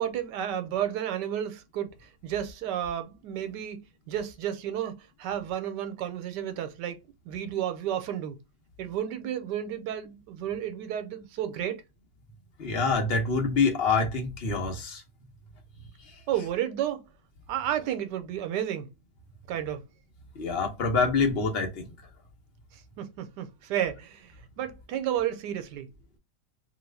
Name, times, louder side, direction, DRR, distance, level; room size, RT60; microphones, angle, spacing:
voice 1, 0.0-7.0 7.3-8.4 8.8-11.8 16.3-17.0 17.5-18.9 19.5-19.8 22.7-25.9, right 10 dB, 85° right, 1.2 m, -32 dB
voice 2, 12.6-15.0 20.4-21.7, left 4 dB, 45° left, 0.8 m, -26 dB
2.8 x 2.4 x 3.3 m
omnidirectional pair, 1.8 m